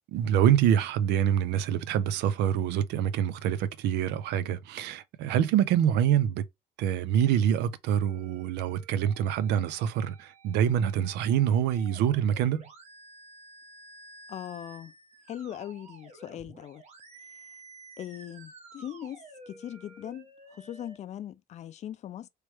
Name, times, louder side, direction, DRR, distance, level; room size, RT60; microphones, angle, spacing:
voice 1, 0.0-6.5 6.8-12.7, right 9 dB, 85° right, 0.5 m, -26 dB
sound 1, 7.9-21.0, right 2 dB, 40° right, 1.4 m, -52 dB
voice 2, 14.3-14.9 15.3-16.8 18.0-22.3, left 11 dB, 40° left, 0.4 m, -40 dB
3.2 x 3.0 x 3.1 m
cardioid pair, 110°, 17 cm